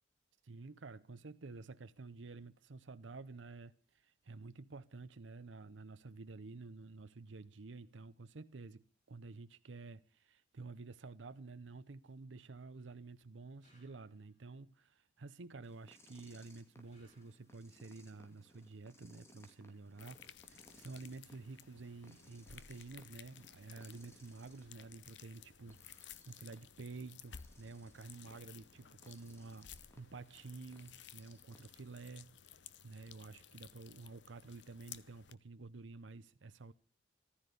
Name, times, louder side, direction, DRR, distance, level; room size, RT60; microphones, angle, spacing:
voice 1, 0.4-29.7 30.0-32.4 32.8-36.7, right 3 dB, 85° right, 0.7 m, -51 dB
sound 1, 13.6-14.5 16.9-17.8, left 1 dB, 40° left, 6.7 m, -72 dB
sound 2, 15.6-32.2, left 1 dB, 15° left, 2.5 m, -65 dB
sound 3, 20.0-35.3, left 9 dB, 75° left, 0.8 m, -57 dB
14.5 x 13.0 x 6.7 m
head